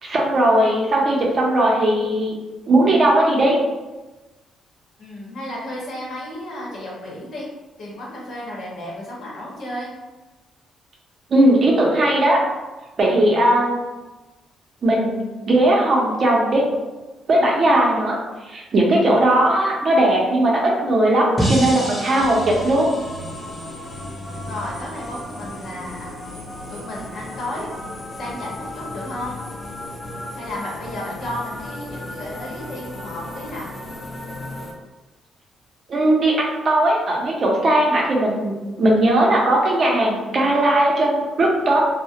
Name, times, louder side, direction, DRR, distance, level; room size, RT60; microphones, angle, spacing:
voice 1, 0.0-2.3 2.7-3.6 11.3-12.4 13.0-13.8 14.8-16.6 17.3-18.2 18.5-23.0 35.9-41.8, right 1 dB, 50° right, -2 dB, 0.6 m, -18 dB
voice 2, 5.0-7.5 7.8-9.9 24.5-26.1 26.7-27.7 28.2-29.4 30.3-33.7, left 1 dB, 65° left, -4 dB, 0.8 m, -33 dB
sound 1, 21.4-24.5, equal, 10° left, 0.8 m, -28 dB
sound 2, 22.2-34.7, left 1 dB, 40° left, 0.6 m, -35 dB
2.3 x 2.1 x 2.7 m, 1.2 s
cardioid pair, 90°, 0 cm